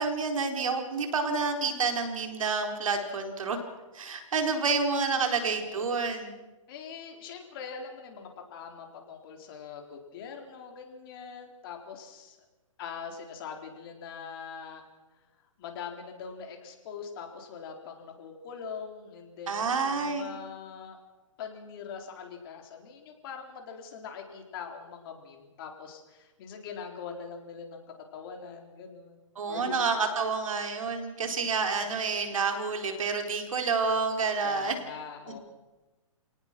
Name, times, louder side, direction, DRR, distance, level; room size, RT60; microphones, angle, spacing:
voice 1, 0.0-3.6 3.9-6.4 19.5-20.3 29.4-34.8, right 4 dB, 70° right, 5 dB, 4.4 m, -29 dB
voice 2, 5.2-5.6 6.7-12.4 12.8-14.8 15.6-21.0 21.4-27.8 28.1-29.2 29.5-29.8 31.2-31.9 34.4-35.4, left 6 dB, 40° left, 3 dB, 4.1 m, -43 dB
28.0 x 18.5 x 6.1 m, 1.1 s
hypercardioid pair, 145°, 18 cm